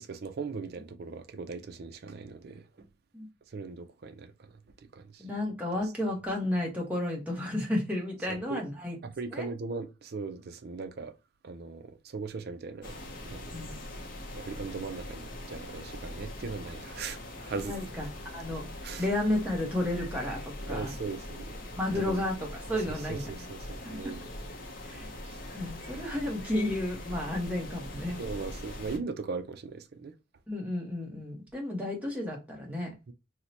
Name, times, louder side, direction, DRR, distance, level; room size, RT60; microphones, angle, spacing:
voice 1, 0.0-2.9 3.5-4.3 4.9-5.2 8.3-8.6 9.0-11.1 11.4-13.0 13.3-13.7 14.3-17.8 18.8-19.0 20.6-21.6 21.9-22.2 22.9-24.3 25.2-25.4 28.2-30.1 33.1-33.2, right 4 dB, 50° right, 0.4 m, -39 dB
voice 2, 5.2-9.0 9.3-9.5 13.5-13.8 17.6-18.6 19.0-20.9 21.8-23.3 23.8-24.0 24.8-25.1 25.5-28.2 30.5-32.9, left 1 dB, 5° right, 0.9 m, -32 dB
sound 1, 12.8-29.0, left 1 dB, 40° left, 0.6 m, -42 dB
2.7 x 2.1 x 3.9 m
head